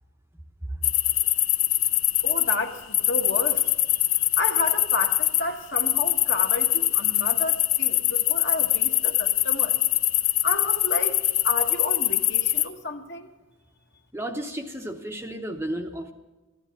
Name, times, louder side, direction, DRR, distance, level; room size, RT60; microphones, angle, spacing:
sound 1, 0.8-2.6 2.9-5.4 5.7-12.6, left 14 dB, 70° left, 0.8 m, -23 dB
voice 1, 2.2-9.8 10.4-13.3, left 2 dB, 50° left, 4 dB, 1.5 m, -32 dB
voice 2, 14.1-16.1, right 1 dB, 10° right, 4 dB, 0.8 m, -33 dB
15.0 x 12.5 x 7.1 m, 1.1 s
head